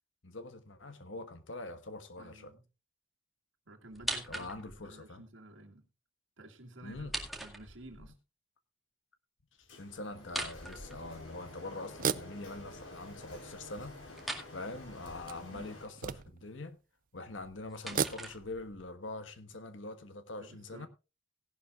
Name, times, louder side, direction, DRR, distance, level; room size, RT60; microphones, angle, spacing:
voice 1, 0.2-2.5 4.3-5.2 6.8-7.1 8.0-8.1 9.6-14.0 14.5-16.8 17.1-20.9, left 2 dB, 70° left, 1.4 m, -44 dB
voice 2, 2.2-2.6 3.7-5.9 6.4-7.1 7.4-8.1 13.3-13.4 15.5-15.8 20.4-20.9, right 1 dB, 70° right, 2.1 m, -52 dB
sound 1, 3.9-4.9 6.9-8.1 10.2-11.5 14.2-14.5 17.2-18.9, right 1 dB, ahead, 2.0 m, -41 dB
Printer, 9.7-15.9, left 2 dB, 90° left, 5.5 m, -50 dB
sound 2, 10.7-10.8 11.9-13.2 13.9-14.0 15.1-16.6 17.8-18.6, right 7 dB, 45° right, 0.5 m, -36 dB
17.5 x 11.5 x 2.4 m
head